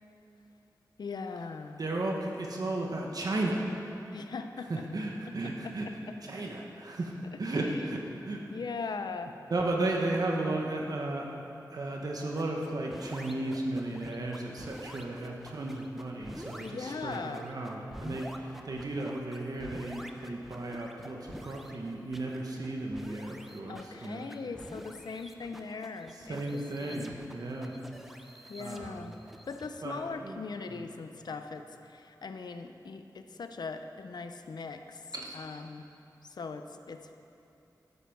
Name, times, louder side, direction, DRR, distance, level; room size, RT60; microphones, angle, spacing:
voice 1, 1.0-1.8 4.1-4.9 5.3-6.2 7.3-7.8 8.5-9.3 16.6-17.5 23.7-27.1 28.5-29.2 29.5-35.9 36.2-37.1, left 4 dB, 75° left, 7 dB, 0.6 m, -40 dB
voice 2, 1.8-3.7 4.7-5.9 6.2-7.1 7.4-8.4 9.5-11.3 11.7-24.3 26.3-27.7 28.6-29.2 29.8-30.4 35.1-35.4, right 2 dB, 60° right, 0 dB, 1.2 m, -34 dB
sound 1, 12.2-29.7, equal, 5° right, 0.7 m, -48 dB
12.5 x 8.4 x 5.9 m, 2.7 s
wide cardioid pair, 105°, 7 cm